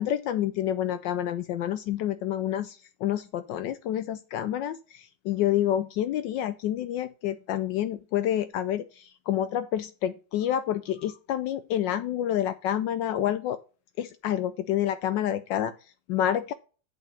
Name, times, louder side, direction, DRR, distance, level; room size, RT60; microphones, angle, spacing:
voice 1, 0.0-13.6 14.0-15.7 16.1-16.5, left 11 dB, 75° left, 1.2 m, -28 dB
8.1 x 4.2 x 7.0 m
omnidirectional pair, 2.0 m